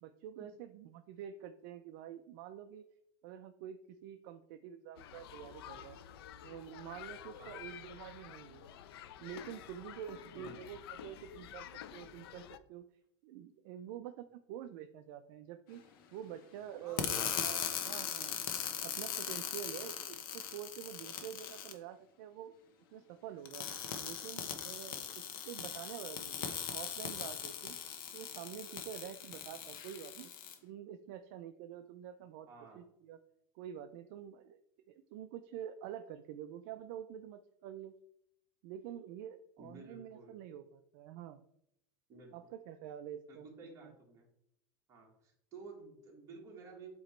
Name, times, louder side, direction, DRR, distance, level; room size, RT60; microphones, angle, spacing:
voice 1, 0.0-2.9 3.2-6.0 6.4-8.7 9.2-12.8 13.2-15.8 16.1-18.4 18.8-22.5 22.9-23.7 24.0-27.8 28.1-30.3 30.6-32.5 32.8-33.2 33.5-34.6 34.9-37.9 38.6-41.5 42.3-43.5 43.8-43.9, right 10 dB, 50° right, 9 dB, 0.4 m, -47 dB
sound 1, 5.0-12.6, left 10 dB, 90° left, 0.5 m, -50 dB
voice 2, 16.8-17.6 32.5-32.8 39.6-40.4 42.1-42.3 43.3-44.3 44.9-46.9, right 4 dB, 25° right, -1 dB, 1.6 m, -53 dB
sound 2, 17.0-21.7 23.5-30.5, left 8 dB, 65° left, 1.0 m, -40 dB
8.0 x 3.0 x 4.3 m, 0.76 s
supercardioid pair, 170°, 12 cm